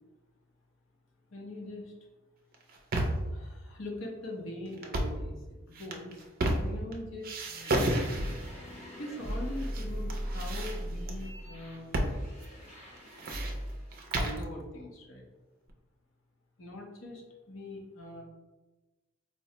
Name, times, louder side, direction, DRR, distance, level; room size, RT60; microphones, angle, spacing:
voice 1, 1.3-2.0 3.3-6.3 6.6-7.4 9.0-12.0 14.2-15.3 16.6-18.2, left 1 dB, 70° left, 0 dB, 0.7 m, -42 dB
sound 1, 2.5-3.3 4.8-5.2 5.8-6.9 7.2-8.5 9.3-9.8 10.1-11.1 11.9-12.2 12.4-12.5 13.0-14.4, right 1 dB, 45° right, 0.4 m, -31 dB
sound 2, 7.5-13.9, equal, 35° left, 0.8 m, -39 dB
4.5 x 2.1 x 2.8 m, 1.1 s
head